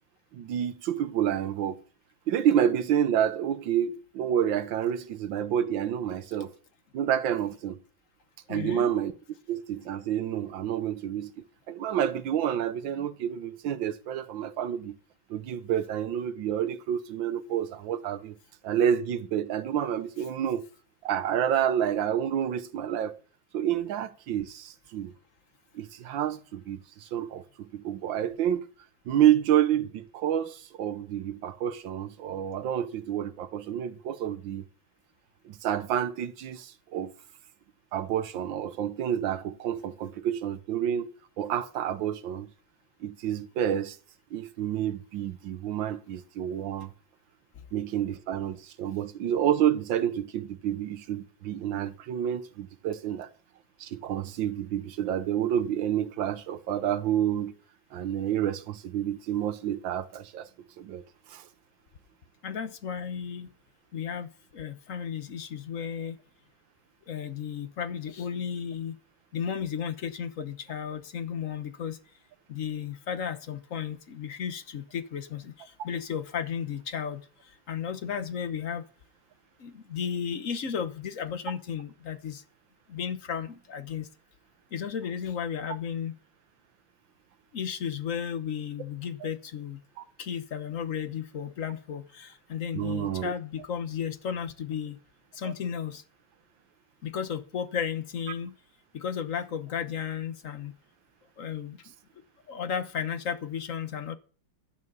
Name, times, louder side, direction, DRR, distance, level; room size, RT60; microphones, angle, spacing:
voice 1, 0.3-1.8 2.3-6.5 6.9-7.8 8.5-9.1 9.5-11.3 11.7-15.0 15.3-18.4 18.6-20.7 21.0-23.2 23.5-25.1 25.7-28.7 29.1-34.6 35.4-37.1 37.9-42.5 43.0-44.0 44.3-46.9 47.7-53.3 53.8-57.5 57.9-60.5 60.8-61.4 90.0-90.1 92.7-93.3, right 10 dB, 85° right, 1.7 m, -29 dB
voice 2, 8.5-8.9 62.4-63.5 63.9-66.2 67.1-69.0 69.3-72.0 72.5-78.8 79.6-82.4 82.9-84.1 84.7-86.2 87.5-89.8 90.2-95.0 95.3-96.0 97.0-98.5 98.9-100.7 101.4-101.8 102.5-104.1, left 7 dB, 50° left, 1.2 m, -34 dB
12.0 x 9.4 x 5.4 m
omnidirectional pair, 2.0 m